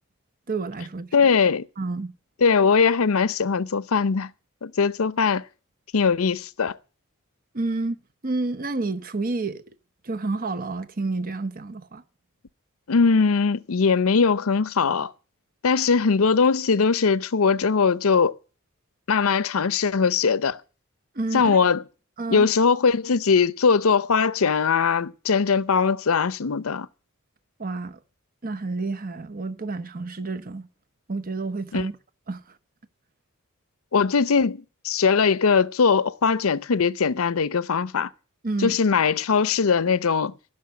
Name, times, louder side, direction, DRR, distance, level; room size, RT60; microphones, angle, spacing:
voice 1, 0.5-1.3 1.8-2.1 7.5-9.6 10.0-12.0 21.1-21.6 22.2-22.5 27.6-28.0 28.4-30.7 31.1-31.9 32.3-32.4 38.4-38.8, right 3 dB, 45° right, 1.0 m, -29 dB
voice 2, 1.1-1.7 2.4-4.3 4.6-5.4 5.9-6.8 12.9-15.1 15.6-18.3 19.1-20.6 21.3-21.8 22.3-26.9 31.7-31.9 33.9-38.1 38.6-40.3, left 5 dB, 75° left, 0.6 m, -21 dB
15.0 x 6.5 x 9.6 m
head